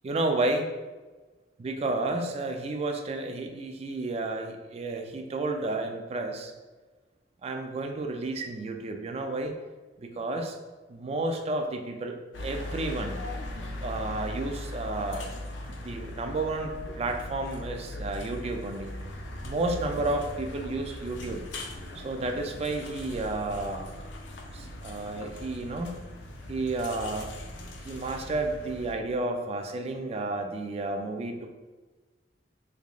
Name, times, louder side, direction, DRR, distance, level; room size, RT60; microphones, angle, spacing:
voice 1, 0.0-0.7 1.6-6.5 7.4-9.5 10.0-10.6 10.9-13.2 13.8-15.3 15.8-19.0 19.4-21.4 22.0-23.9 24.5-26.0 26.5-27.3 27.8-31.5, right 2 dB, 35° right, 4 dB, 0.3 m, -31 dB
sound 1, 12.3-28.9, left 1 dB, 90° left, 0.5 m, -39 dB
3.6 x 3.3 x 2.3 m, 1.3 s
head